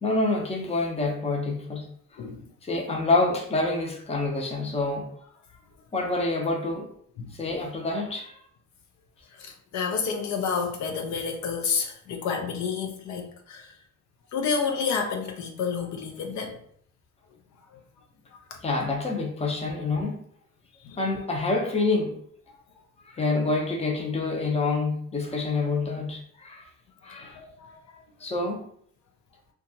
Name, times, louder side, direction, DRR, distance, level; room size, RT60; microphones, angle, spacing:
voice 1, 0.0-2.2 2.6-5.1 5.9-6.9 7.3-8.4 18.6-20.2 21.0-22.2 23.0-26.7 27.0-27.4 28.2-28.6, left 3 dB, 20° left, 1 dB, 0.6 m, -27 dB
voice 2, 9.4-13.7 14.3-16.6 20.8-21.0 27.4-27.7, left 5 dB, 70° left, 3 dB, 0.5 m, -29 dB
2.8 x 2.3 x 2.7 m, 0.64 s
cardioid pair, 90°, 30 cm